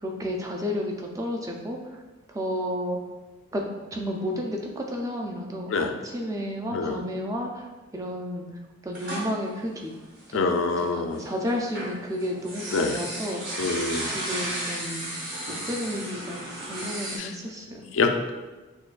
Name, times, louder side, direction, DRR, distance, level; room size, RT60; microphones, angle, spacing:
voice 1, 0.0-1.8 2.3-3.0 3.5-3.6 3.9-7.7 7.9-8.5 8.8-9.9 10.3-13.6 14.1-15.1 15.6-16.4 16.7-17.9, equal, 15° right, 1 dB, 0.4 m, -32 dB
sound 1, 8.9-10.7 11.1-17.2, right 1 dB, 45° right, 1.1 m, -34 dB
voice 2, 10.3-11.2 12.7-13.0 13.6-14.1 17.2-17.3 17.9-18.3, left 3 dB, 65° left, 6 dB, 0.4 m, -25 dB
6.3 x 2.3 x 2.4 m, 1.2 s
head